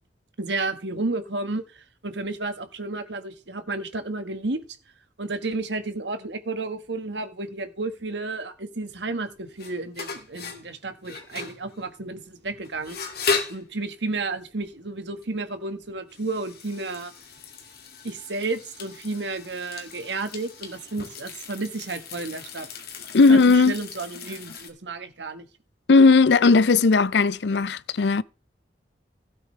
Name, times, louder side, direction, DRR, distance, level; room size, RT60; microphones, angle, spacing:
voice 1, 0.4-4.6 5.2-13.1 13.5-17.1 18.0-22.7 23.3-25.5, right 3 dB, 85° right, 1.6 m, -32 dB
sound 1, 9.2-24.7, left 4 dB, 60° left, 2.5 m, -36 dB
voice 2, 23.1-23.7 25.9-28.2, left 4 dB, 75° left, 0.5 m, -17 dB
16.5 x 8.4 x 3.3 m
head